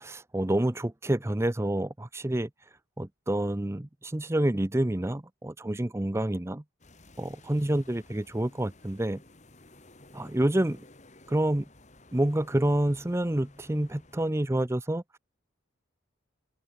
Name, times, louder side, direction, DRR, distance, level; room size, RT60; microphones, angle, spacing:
voice 1, 0.0-2.5 3.0-6.6 7.2-9.2 10.1-10.8 11.3-11.7 12.1-15.2, right 1 dB, 15° right, 0.6 m, -28 dB
sound 1, 6.8-14.3, left 2 dB, 35° left, 3.3 m, -55 dB
open air
head